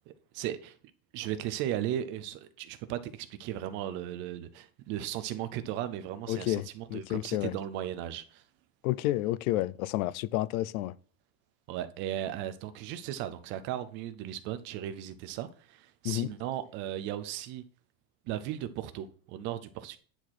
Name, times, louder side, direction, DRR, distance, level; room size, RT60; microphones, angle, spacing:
voice 1, 0.1-0.8 1.1-8.4 11.7-17.6 18.3-20.0, right 11 dB, 30° right, 0.4 m, -36 dB
voice 2, 6.3-7.6 8.8-11.0 16.0-16.3, left 15 dB, 85° left, 0.6 m, -30 dB
9.9 x 4.4 x 6.1 m
supercardioid pair, 175°, 40 cm